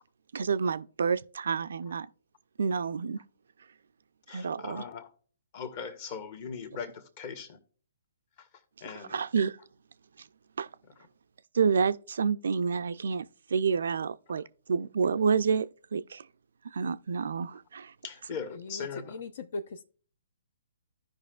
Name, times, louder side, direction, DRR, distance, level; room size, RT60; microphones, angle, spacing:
voice 1, 0.3-2.1 2.6-3.2 4.3-4.8 9.1-9.6 10.6-10.7 11.5-16.3 16.6-17.9, right 6 dB, 65° right, 0.4 m, -29 dB
voice 2, 4.3-5.1 5.5-7.6 8.4-8.5 8.8-9.2 18.0-19.2, left 6 dB, 40° left, 1.3 m, -40 dB
voice 3, 18.7-19.8, left 2 dB, 55° left, 0.5 m, -39 dB
15.5 x 5.3 x 2.3 m
figure-of-eight pair, 125°, 0 cm